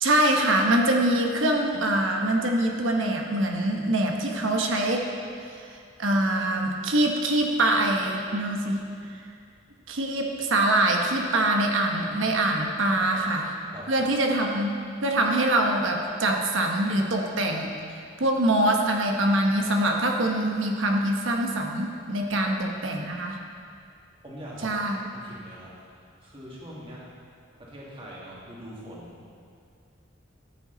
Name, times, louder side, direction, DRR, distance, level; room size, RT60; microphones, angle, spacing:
voice 1, 0.0-5.0 5.7-8.8 9.9-13.5 13.9-17.7 18.2-23.4 24.6-25.0, right 1 dB, 65° right, 1 dB, 1.2 m, -24 dB
voice 2, 12.9-13.2 13.7-14.1 22.3-22.5 24.2-25.7 26.2-27.1 27.6-29.2, equal, 25° right, -6 dB, 2.3 m, -43 dB
13.5 x 9.1 x 4.0 m, 2.3 s
head